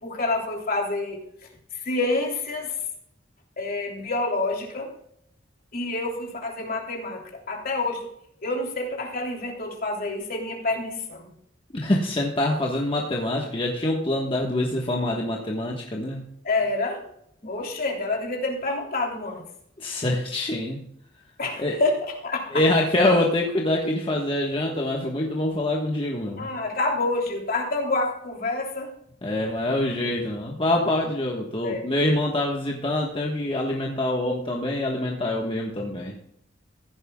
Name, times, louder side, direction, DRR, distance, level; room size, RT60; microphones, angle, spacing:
voice 1, 0.0-1.2 1.7-2.8 3.6-4.9 5.7-8.0 8.4-11.3 16.4-17.0 17.4-19.4 21.4-22.6 23.0-23.2 26.4-28.9 31.6-31.9, left 2 dB, 50° left, 0 dB, 3.1 m, -28 dB
voice 2, 11.7-16.2 19.8-20.8 21.6-21.8 22.5-26.5 29.2-36.1, left 1 dB, 30° left, -1 dB, 1.4 m, -25 dB
15.5 x 11.0 x 2.3 m, 0.74 s
head